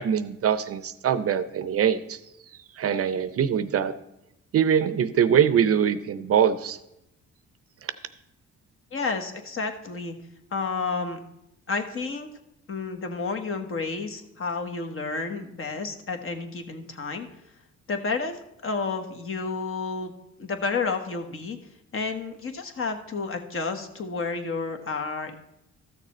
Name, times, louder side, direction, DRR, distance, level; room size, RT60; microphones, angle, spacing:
voice 1, 0.0-2.2 2.8-3.9 4.5-6.8, right 8 dB, 50° right, 14 dB, 0.6 m, -23 dB
voice 2, 8.9-10.1 10.5-11.2 11.7-12.3 12.7-17.3 17.9-20.1 20.4-21.6 21.9-25.4, left 4 dB, 45° left, 6 dB, 1.3 m, -30 dB
13.0 x 6.6 x 4.3 m, 0.85 s
cardioid pair, 90°, 30 cm